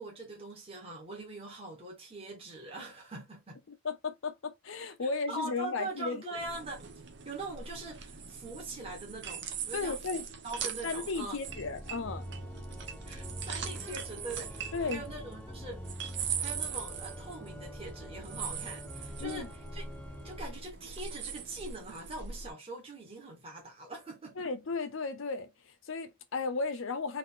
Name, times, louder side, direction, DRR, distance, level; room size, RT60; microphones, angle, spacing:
voice 1, 0.0-3.6 5.3-6.9 7.2-11.4 12.6-15.8 16.4-19.8 20.2-24.5, right 2 dB, 25° right, 1.5 m, -43 dB
voice 2, 3.7-6.4 9.7-10.3 10.8-12.3 14.7-15.1 19.2-19.5 24.4-27.2, left 4 dB, 70° left, 0.6 m, -35 dB
sound 1, 6.4-22.5, right 7 dB, 55° right, 0.7 m, -41 dB
Organ, 11.4-20.7, equal, 10° left, 0.4 m, -45 dB
3.9 x 2.7 x 3.6 m
head